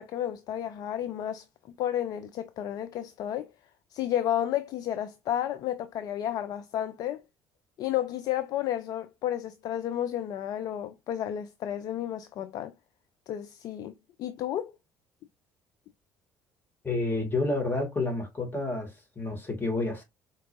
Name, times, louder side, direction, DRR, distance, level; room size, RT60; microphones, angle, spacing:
voice 1, 0.0-1.4 1.8-3.5 3.9-7.2 7.8-12.7 13.3-14.7, left 11 dB, 45° left, 0.3 m, -32 dB
voice 2, 16.8-20.0, left 2 dB, 20° left, 1.8 m, -29 dB
4.4 x 2.9 x 2.4 m
figure-of-eight pair, 55°, 9 cm